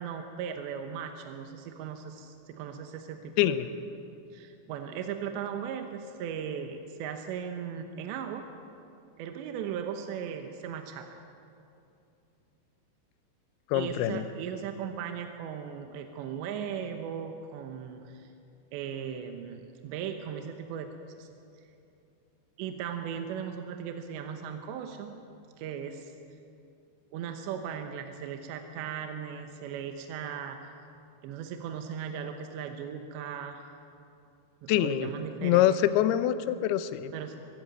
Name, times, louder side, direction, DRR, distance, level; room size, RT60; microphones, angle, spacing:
voice 1, 0.0-3.6 4.3-8.5 9.2-11.2 13.7-18.3 18.7-21.3 22.6-25.2 25.6-26.1 27.1-30.6 31.2-33.6 34.6-35.8 37.1-37.4, right 8 dB, 80° right, 6 dB, 3.2 m, -37 dB
voice 2, 13.7-14.2 34.7-35.1 35.4-37.1, left 12 dB, 80° left, 12 dB, 2.4 m, -25 dB
23.5 x 14.0 x 9.0 m, 2.6 s
omnidirectional pair, 5.3 m